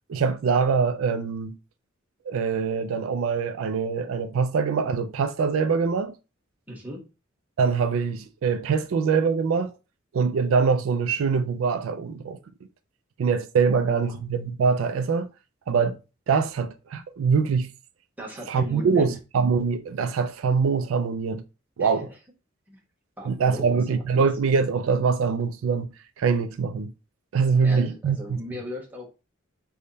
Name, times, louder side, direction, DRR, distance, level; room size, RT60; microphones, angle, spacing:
voice 1, 0.1-1.6 2.3-6.1 7.6-9.7 10.1-12.4 13.2-15.3 15.7-16.0 16.3-17.7 18.5-21.4 21.8-22.1 23.3-25.9 26.2-26.9 27.3-28.4, right 5 dB, 75° right, 0.4 m, -23 dB
voice 2, 6.7-7.0 13.7-14.1 18.2-19.1 21.8-22.1 22.7-22.8 23.2-24.0 27.6-29.1, left 1 dB, 10° right, 1.1 m, -38 dB
3.4 x 2.1 x 3.9 m
head